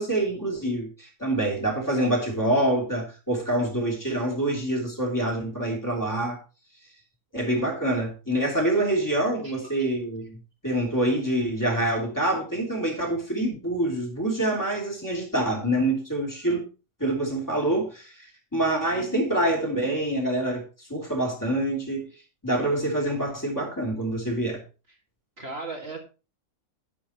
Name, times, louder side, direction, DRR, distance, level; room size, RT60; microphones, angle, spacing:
voice 1, 0.0-6.4 7.3-10.4 10.6-16.6 17.0-22.1 22.4-24.6, right 1 dB, 10° left, 0 dB, 3.0 m, -26 dB
voice 2, 9.4-9.9 18.8-19.3 24.9-25.0 25.4-26.0, right 3 dB, 45° right, 2 dB, 2.1 m, -39 dB
11.0 x 10.0 x 3.0 m, 0.32 s
omnidirectional pair, 1.6 m